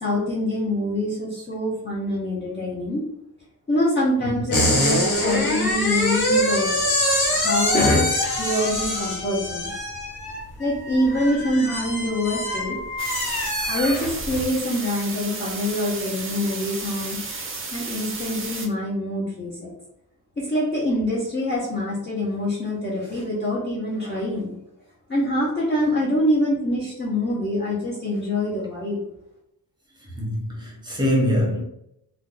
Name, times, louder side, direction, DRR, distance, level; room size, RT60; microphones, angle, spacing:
voice 1, 0.0-3.0 3.7-6.8 7.3-9.7 10.6-12.8 13.7-17.2 17.7-19.7 20.4-24.5 25.1-29.0, left 1 dB, 30° left, 0.7 m, -25 dB
sound 1, 4.5-14.5, left 1 dB, 85° left, 1.3 m, -24 dB
sound 2, 13.0-18.7, right 4 dB, 35° right, 0.5 m, -33 dB
voice 2, 30.2-31.6, equal, 10° right, 0.8 m, -24 dB
2.5 x 2.3 x 3.8 m
wide cardioid pair, 175°, 38 cm